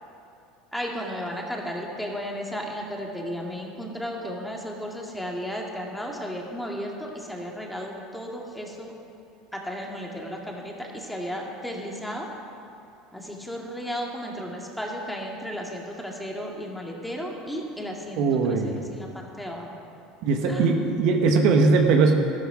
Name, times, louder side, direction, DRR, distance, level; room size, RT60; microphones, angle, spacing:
voice 1, 0.7-8.9 9.5-12.3 13.1-18.2 18.5-19.8 20.5-20.6, equal, 5° left, -1 dB, 2.1 m, -34 dB
voice 2, 18.2-18.8 20.2-22.2, right 4 dB, 65° right, 3 dB, 1.4 m, -20 dB
13.0 x 12.0 x 4.9 m, 2.6 s
supercardioid pair, 105°, 0 cm